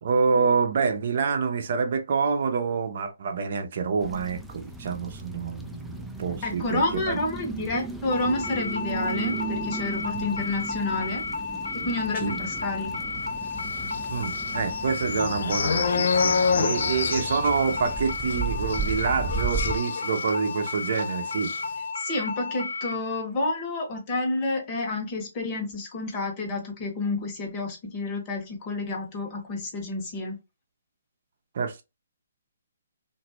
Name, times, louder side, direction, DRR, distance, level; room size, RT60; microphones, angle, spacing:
voice 1, 0.0-7.2 10.1-10.5 12.2-12.3 14.1-21.5 31.5-31.8, right 5 dB, 55° right, 0.6 m, -27 dB
sound 1, 4.0-19.8, right 3 dB, ahead, 0.4 m, -36 dB
voice 2, 6.4-11.2 11.7-13.0 22.0-30.4, left 2 dB, 30° left, 1.2 m, -29 dB
sound 2, 8.1-22.9, left 4 dB, 85° left, 1.2 m, -33 dB
sound 3, 13.8-20.6 20.8-21.0 21.3-21.6, left 5 dB, 60° left, 0.4 m, -28 dB
2.9 x 2.6 x 2.8 m
hypercardioid pair, 140°, 0 cm